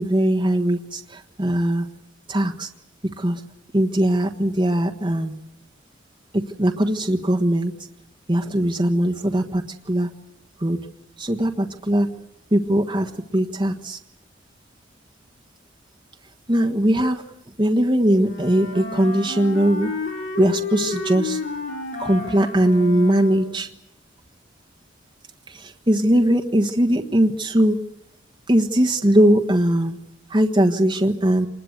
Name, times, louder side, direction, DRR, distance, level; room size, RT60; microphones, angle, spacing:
voice 1, 0.0-1.9 2.3-2.7 3.2-3.4 3.7-5.3 6.3-7.7 8.3-10.1 10.6-10.8 11.2-12.1 12.5-14.0 16.5-17.2 17.6-19.9 20.4-21.4 22.0-23.7 25.5-27.8 28.5-30.0 30.3-31.5, right 1 dB, 25° right, 2 dB, 1.4 m, -20 dB
Wind instrument woodwind instrument, 18.2-23.6, left 3 dB, 75° left, 6.7 m, -31 dB
26.5 x 21.0 x 8.1 m, 0.80 s
head